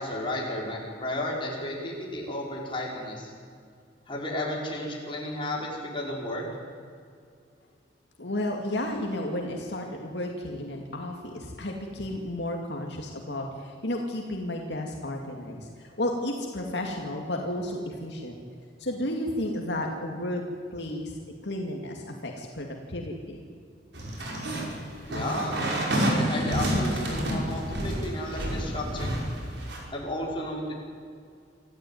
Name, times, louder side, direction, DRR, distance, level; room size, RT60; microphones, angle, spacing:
voice 1, 0.0-3.3 4.1-6.4 25.1-25.6 26.2-29.2 29.9-30.7, left 1 dB, 30° left, -3 dB, 5.5 m, -33 dB
voice 2, 8.2-18.4 18.8-20.4 20.7-21.1 21.4-23.4, left 1 dB, 70° left, 1 dB, 2.4 m, -32 dB
sound 1, 23.9-29.8, right 1 dB, 75° right, 5.6 m, -29 dB
26.0 x 14.0 x 9.5 m, 2.3 s
head